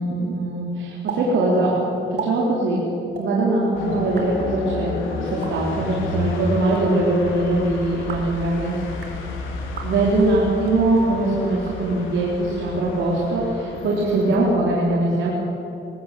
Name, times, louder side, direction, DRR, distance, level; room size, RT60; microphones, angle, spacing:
voice 1, 0.0-1.8 2.1-2.9 3.2-8.8 9.8-15.3, right 2 dB, 75° right, -4 dB, 4.2 m, -21 dB
sound 1, 1.1-1.2 1.5-1.6 2.0-2.3 3.1-3.3 4.0-4.3 5.3-5.5 6.5-6.8 7.9-8.3 8.9-9.2 9.7-9.9 10.6-10.8 11.5-12.2, right 6 dB, 55° right, 4.1 m, -35 dB
sound 2, 3.7-14.5, left 3 dB, 90° left, 3.8 m, -31 dB
20.5 x 18.0 x 8.5 m, 2.9 s
cardioid pair, 90°, 20 cm